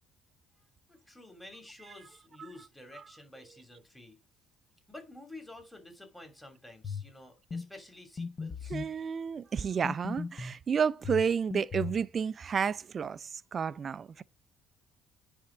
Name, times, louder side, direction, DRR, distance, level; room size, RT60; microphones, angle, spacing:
voice 1, 0.5-4.2 4.9-8.8, left 2 dB, 5° left, 3.0 m, -51 dB
sound 1, 6.8-7.1 7.5-7.7 8.2-8.9 9.8-10.6 11.0-12.0, left 5 dB, 35° left, 0.9 m, -37 dB
voice 2, 8.7-14.2, right 6 dB, 40° right, 0.5 m, -31 dB
10.0 x 3.6 x 6.3 m
supercardioid pair, 75°, 0 cm